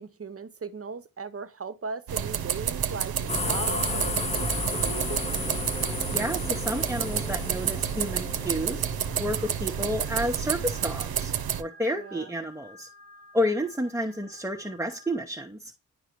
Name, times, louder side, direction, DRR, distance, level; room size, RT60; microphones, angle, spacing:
voice 1, 0.0-5.2 11.9-12.3, right 5 dB, 40° right, 0.7 m, -38 dB
sound 1, 2.1-11.6, right 9 dB, 90° right, 0.6 m, -30 dB
sound 2, 3.3-10.1, left 2 dB, 20° left, 0.5 m, -33 dB
voice 2, 5.9-8.8 9.2-11.3 11.6-12.9 13.3-15.7, equal, 5° right, 0.8 m, -30 dB
sound 3, 9.7-15.2, equal, 75° left, 2.7 m, -52 dB
10.0 x 4.8 x 3.0 m
cardioid pair, 65°, 36 cm